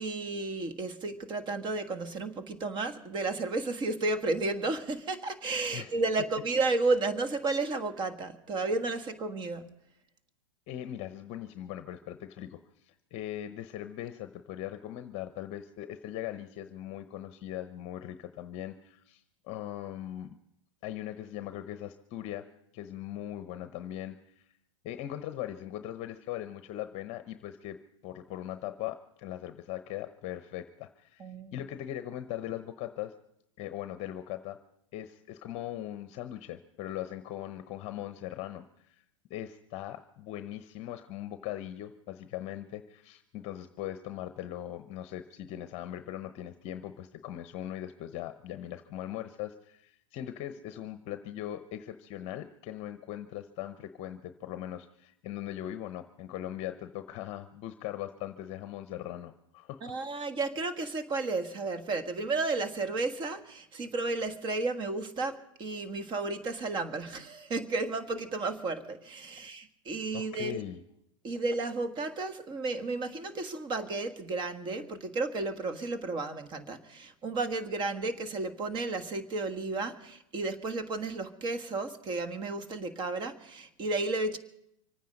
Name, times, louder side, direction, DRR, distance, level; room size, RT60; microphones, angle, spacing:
voice 1, 0.0-9.7 31.2-31.5 59.8-70.6 71.2-84.4, right 3 dB, 25° right, 9 dB, 1.5 m, -32 dB
voice 2, 10.7-20.4 20.8-22.5 22.7-24.4 24.8-31.2 31.5-33.1 33.6-34.6 34.9-39.0 39.3-59.9 70.1-70.8, left 12 dB, 40° left, 10 dB, 0.8 m, -40 dB
25.5 x 9.4 x 5.3 m, 0.78 s
hypercardioid pair, 120°, 17 cm